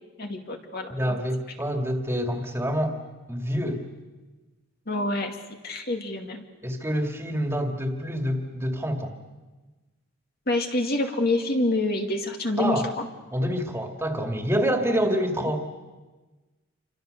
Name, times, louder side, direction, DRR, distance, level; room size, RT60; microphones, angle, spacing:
voice 1, 0.2-1.2 4.9-6.5 10.5-13.1, left 2 dB, 50° left, 3 dB, 2.3 m, -27 dB
voice 2, 0.9-3.0 3.3-3.8 6.6-9.2 12.6-12.9 13.3-15.7, equal, 15° right, 3 dB, 2.3 m, -27 dB
28.5 x 25.0 x 6.7 m, 1.2 s
head